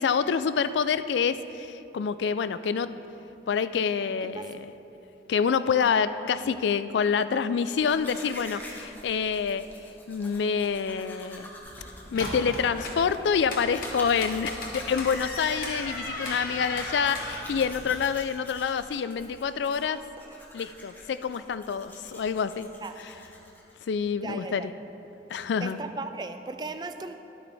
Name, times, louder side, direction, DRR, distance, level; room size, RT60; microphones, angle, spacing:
voice 1, 0.0-3.0 3.5-4.7 5.3-9.6 10.1-11.5 12.1-20.0 20.5-22.7 23.9-24.7 25.3-25.8, left 6 dB, 85° left, 13 dB, 0.3 m, -27 dB
Domestic sounds home sounds, 7.7-23.8, left 1 dB, 10° left, 0.8 m, -47 dB
sound 1, 11.6-18.1, left 2 dB, 55° left, 1.3 m, -37 dB
voice 2, 24.2-24.7 25.6-27.1, right 3 dB, 25° right, 8 dB, 0.3 m, -36 dB
11.5 x 8.6 x 3.4 m, 3.0 s
head